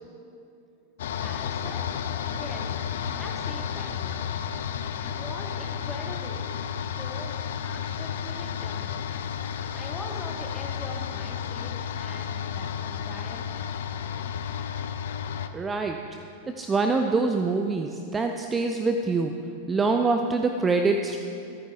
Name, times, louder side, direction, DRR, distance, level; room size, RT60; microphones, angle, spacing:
sound 1, 1.0-15.5, left 8 dB, 60° left, 0.7 m, -32 dB
voice 1, 1.2-1.9 2.3-2.7 3.0-4.3 5.0-6.5 6.8-9.0 9.7-13.9, left 2 dB, 10° left, 0 dB, 1.9 m, -42 dB
voice 2, 15.5-16.0 16.5-21.2, right 3 dB, 15° right, 5 dB, 0.6 m, -25 dB
24.0 x 9.5 x 3.7 m, 2.7 s
figure-of-eight pair, 90°, 0 cm